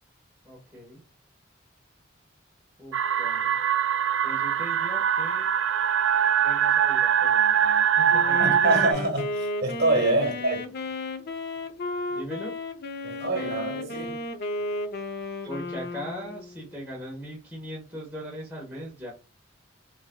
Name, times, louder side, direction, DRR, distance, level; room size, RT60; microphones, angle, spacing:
voice 1, 0.4-1.0 2.8-3.6 4.2-5.5 6.4-8.7 10.2-10.5 12.1-12.7 15.5-19.1, equal, 10° right, 1.2 m, -40 dB
sound 1, 2.9-8.9, right 9 dB, 75° right, 0.4 m, -23 dB
Wind instrument woodwind instrument, 8.1-16.7, left 2 dB, 55° left, 0.6 m, -34 dB
voice 2, 8.4-10.6 13.0-14.2, right 2 dB, 55° right, 1.5 m, -26 dB
5.0 x 2.6 x 2.2 m
head